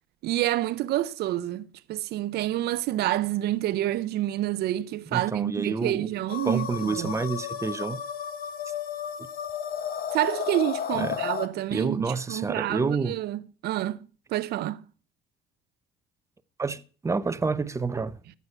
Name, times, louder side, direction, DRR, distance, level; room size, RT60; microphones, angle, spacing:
voice 1, 0.2-7.1 10.1-14.9, right 14 dB, 75° right, 0.6 m, -28 dB
voice 2, 5.1-6.1 6.4-8.0 11.0-11.2 11.7-13.1 16.6-18.2, right 4 dB, 15° right, 0.8 m, -29 dB
sound 1, 6.3-11.5, left 9 dB, 60° left, 1.2 m, -33 dB
14.0 x 8.3 x 5.7 m
cardioid pair, 110°, 17 cm